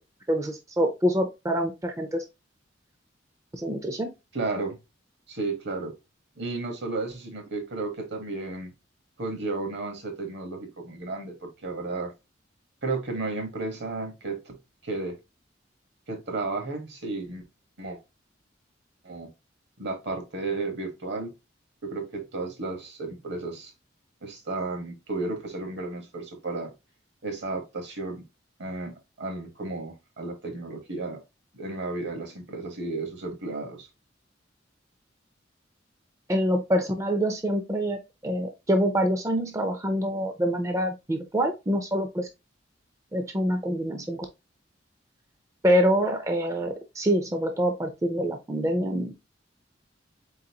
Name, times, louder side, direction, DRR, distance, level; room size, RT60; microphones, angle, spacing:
voice 1, 0.3-2.2 3.6-4.1 36.3-38.0 38.2-42.3 43.1-44.3 45.6-49.1, equal, 15° right, 0.4 m, -25 dB
voice 2, 4.3-4.8 5.3-6.0 6.4-8.7 9.2-12.1 12.8-14.6 14.8-15.2 16.1-17.4 17.8-18.0 19.0-19.3 19.8-21.3 21.8-23.7 24.2-26.7 27.2-28.2 28.6-31.2 31.5-33.9, right 3 dB, 65° right, 1.2 m, -33 dB
4.0 x 3.9 x 2.8 m
head